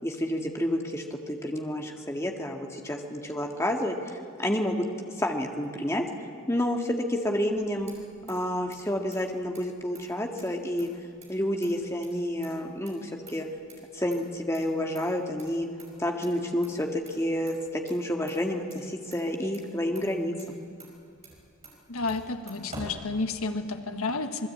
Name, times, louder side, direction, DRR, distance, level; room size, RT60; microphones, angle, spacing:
voice 1, 0.0-4.8 5.2-6.0 6.5-7.9 8.3-10.9 11.3-13.5 13.9-15.7 16.0-20.6, left 1 dB, 10° left, 2 dB, 1.8 m, -29 dB
Motor vehicle (road), 7.5-23.7, right 2 dB, 30° right, 5.5 m, -50 dB
voice 2, 21.9-24.5, left 3 dB, 80° left, 7 dB, 1.5 m, -31 dB
27.0 x 21.0 x 8.7 m, 2.3 s
head